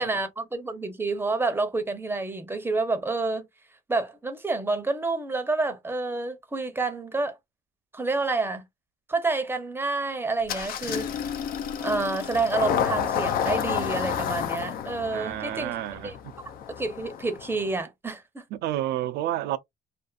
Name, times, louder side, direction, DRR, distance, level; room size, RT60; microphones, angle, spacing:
voice 1, 0.0-3.5 3.9-7.4 7.9-8.6 9.1-11.1 11.8-15.7 16.0-16.1 16.8-18.4, right 3 dB, 15° right, 0.6 m, -28 dB
Engine starting, 10.5-17.8, left 8 dB, 60° left, 0.5 m, -30 dB
voice 2, 15.1-16.3 18.5-19.6, right 13 dB, 75° right, 0.4 m, -30 dB
2.5 x 2.4 x 2.3 m
cardioid pair, 110°, 17 cm